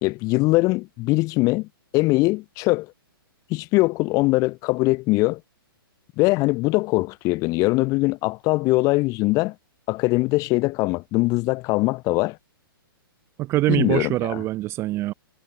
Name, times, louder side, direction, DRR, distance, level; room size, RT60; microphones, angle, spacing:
voice 1, 0.0-1.7 1.9-2.9 3.5-5.4 6.2-9.5 9.9-12.4 13.7-14.4, left 22 dB, 25° left, 1.4 m, -22 dB
voice 2, 13.4-15.1, right 17 dB, 20° right, 0.5 m, -23 dB
hypercardioid pair, 145°, 12 cm